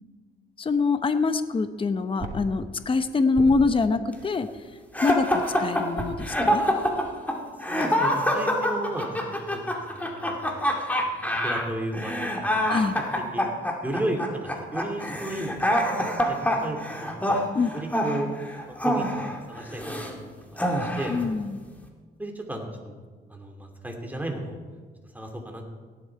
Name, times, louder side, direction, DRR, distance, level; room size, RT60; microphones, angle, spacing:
voice 1, 0.6-4.5 5.0-6.6 12.7-12.9 17.5-17.7 21.1-21.6, left 4 dB, 25° left, 10 dB, 0.8 m, -24 dB
sound 1, 1.3-5.4 6.0-9.0, right 2 dB, 35° right, 2.7 m, -42 dB
sound 2, 4.9-20.1 20.6-21.2, equal, 10° left, 2.2 m, -26 dB
voice 2, 7.7-9.6 9.9-10.7 11.2-12.9 13.3-13.4 13.8-17.4 17.7-18.3 18.7-21.2 22.2-23.0 23.3-24.6 25.1-25.7, right 1 dB, 10° right, 2 dB, 2.6 m, -34 dB
17.0 x 11.0 x 4.6 m, 1.5 s
cardioid pair, 90°, 20 cm